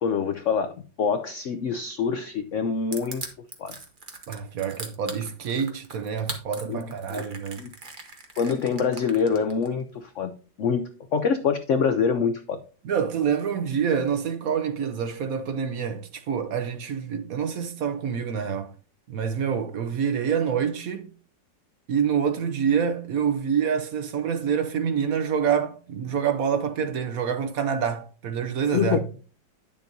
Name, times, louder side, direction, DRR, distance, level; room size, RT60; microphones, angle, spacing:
voice 1, 0.0-3.2 3.6-3.7 6.6-6.8 7.1-7.3 7.6-7.7 8.4-10.3 10.6-10.8 11.1-12.6 28.7-29.0, left 6 dB, 80° left, 0.6 m, -25 dB
Crushing, 2.9-9.7, right 3 dB, 30° right, 1.2 m, -39 dB
voice 2, 4.3-7.6 12.8-18.7 19.1-21.1 21.9-29.0, right 7 dB, 60° right, 1.0 m, -26 dB
10.5 x 7.2 x 2.7 m
omnidirectional pair, 1.9 m